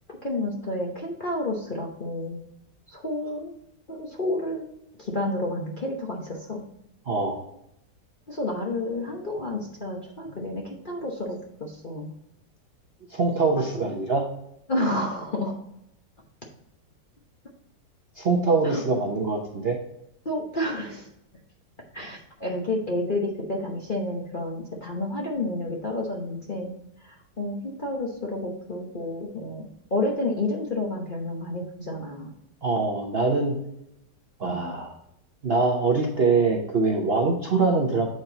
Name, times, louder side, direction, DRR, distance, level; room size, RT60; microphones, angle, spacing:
voice 1, 0.2-2.4 2.9-3.5 3.9-4.6 5.0-6.6 8.3-12.1 13.6-13.7 14.7-15.5 18.6-18.8 20.2-21.1 21.9-26.7 27.0-29.7 29.9-32.3 34.4-34.6, left 1 dB, 35° left, -1 dB, 0.8 m, -30 dB
voice 2, 7.1-7.4 13.1-14.2 18.2-19.8 32.6-33.5 34.4-34.9 35.4-38.1, right 3 dB, 50° right, 0 dB, 0.7 m, -23 dB
7.8 x 4.3 x 3.8 m, 0.80 s
omnidirectional pair, 2.0 m